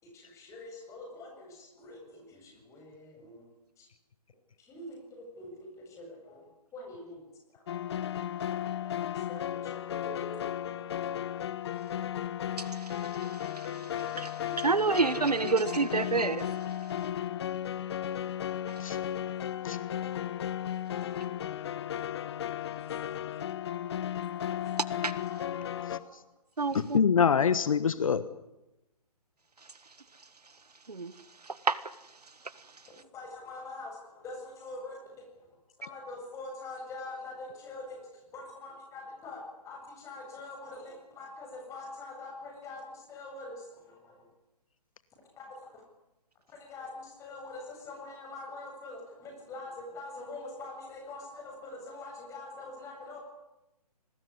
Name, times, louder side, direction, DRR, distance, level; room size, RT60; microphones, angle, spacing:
voice 1, 0.0-3.5 3.8-3.9 4.6-7.2 7.5-7.6 9.0-10.4 10.8-10.9 23.0-23.2 25.3-26.2 32.9-44.3 45.4-45.8 46.5-53.2, left 2 dB, 15° left, 7.5 m, -45 dB
sound 1, 7.7-26.0, left 10 dB, 40° left, 1.0 m, -35 dB
voice 2, 12.6-16.5 25.0-25.1 26.6-27.0 30.9-31.1 31.4-31.9, right 4 dB, 80° right, 1.5 m, -30 dB
voice 3, 26.7-28.2, left 6 dB, 55° left, 1.3 m, -25 dB
24.0 x 20.0 x 9.7 m
figure-of-eight pair, 135°, 20 cm